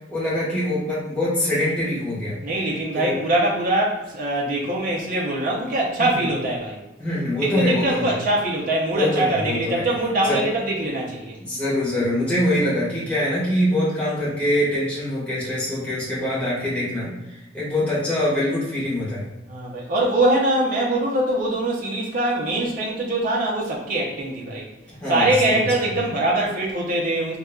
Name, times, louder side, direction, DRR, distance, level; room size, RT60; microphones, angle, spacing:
voice 1, 0.1-2.4 2.9-3.2 6.0-6.3 7.0-8.1 8.9-9.8 10.2-10.4 11.4-17.1 17.5-19.2 25.0-25.9, left 1 dB, 10° left, -10 dB, 1.4 m, -24 dB
voice 2, 2.4-6.8 7.4-11.4 19.5-24.7 25.1-27.4, right 1 dB, 45° right, -3 dB, 0.6 m, -23 dB
3.8 x 2.8 x 2.3 m, 1.0 s
head